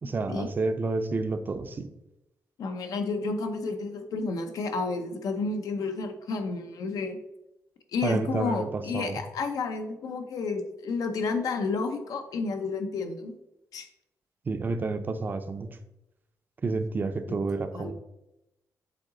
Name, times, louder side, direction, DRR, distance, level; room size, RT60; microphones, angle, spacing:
voice 1, 0.0-1.9 8.0-9.2 14.5-15.7 16.6-17.9, right 3 dB, 30° right, 9 dB, 0.5 m, -30 dB
voice 2, 2.6-7.2 7.9-13.3 13.7-13.9 17.3-17.4 17.7-17.9, left 4 dB, 70° left, 6 dB, 0.8 m, -31 dB
7.5 x 3.9 x 3.8 m, 0.90 s
wide cardioid pair, 160°, 6 cm